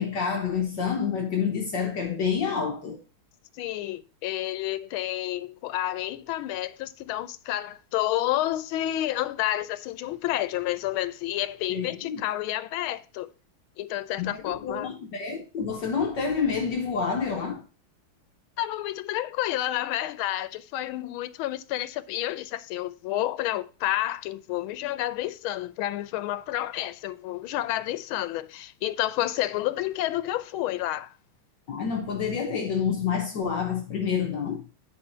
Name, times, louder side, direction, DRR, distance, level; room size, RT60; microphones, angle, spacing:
voice 1, 0.0-3.0 11.7-12.2 14.2-17.6 31.7-34.6, left 6 dB, 65° left, 1.5 m, -28 dB
voice 2, 3.5-13.3 13.8-14.9 18.6-31.1, left 14 dB, 90° left, 1.5 m, -30 dB
9.3 x 4.7 x 4.2 m
omnidirectional pair, 2.2 m